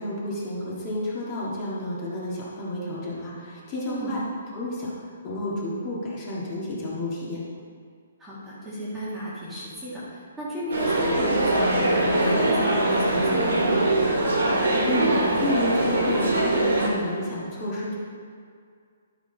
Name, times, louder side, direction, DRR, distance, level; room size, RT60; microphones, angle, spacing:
voice 1, 0.0-4.3 4.5-4.9 5.2-7.4 14.6-18.0, left 1 dB, 20° left, -7 dB, 1.7 m, -30 dB
voice 2, 3.8-4.2 8.2-13.7, equal, 5° right, -10 dB, 1.6 m, -32 dB
sound 1, 10.7-16.9, right 1 dB, 90° right, 2.5 m, -22 dB
12.0 x 5.9 x 3.9 m, 2.1 s
hypercardioid pair, 175°, 0 cm